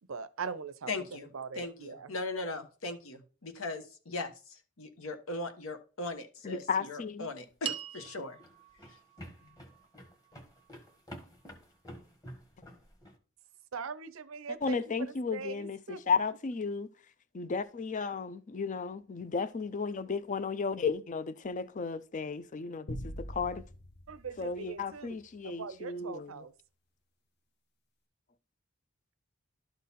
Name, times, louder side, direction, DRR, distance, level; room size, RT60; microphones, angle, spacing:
voice 1, 0.1-0.9 1.3-2.1 13.7-16.2 24.1-26.5, right 5 dB, 75° right, 0.6 m, -41 dB
voice 2, 0.9-1.3 1.6-8.4, left 2 dB, 75° left, 1.2 m, -39 dB
voice 3, 6.4-7.3 14.6-16.9 17.3-23.7 24.4-26.4, left 5 dB, 35° left, 0.5 m, -34 dB
sound 1, 7.5-13.2, equal, 15° left, 1.4 m, -50 dB
sound 2, 7.6-12.1, right 10 dB, 25° right, 0.6 m, -45 dB
sound 3, 22.9-25.4, equal, 50° left, 1.0 m, -44 dB
12.0 x 3.9 x 4.2 m
head